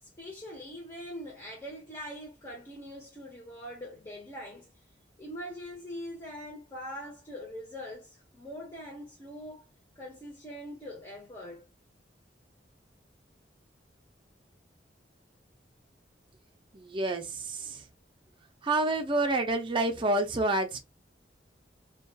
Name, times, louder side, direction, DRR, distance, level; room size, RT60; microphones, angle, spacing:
voice 1, 0.0-4.7 5.2-9.6 10.0-11.7, equal, 20° left, 0.6 m, -42 dB
voice 2, 16.7-17.8 18.6-20.8, right 2 dB, 25° right, 0.5 m, -28 dB
2.3 x 2.2 x 2.6 m
head